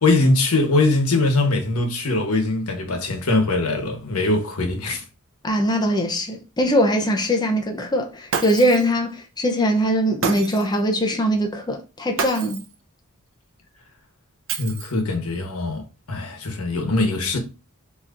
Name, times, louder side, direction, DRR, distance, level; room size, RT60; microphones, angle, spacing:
voice 1, 0.0-5.0 14.6-17.4, left 2 dB, 80° left, 1.2 m, -22 dB
voice 2, 5.4-12.6, equal, 20° left, 0.6 m, -21 dB
Shatter, 8.3-8.9 10.2-10.8 12.2-12.8 14.5-15.1, right 6 dB, 60° right, 0.6 m, -28 dB
6.6 x 2.9 x 2.5 m
head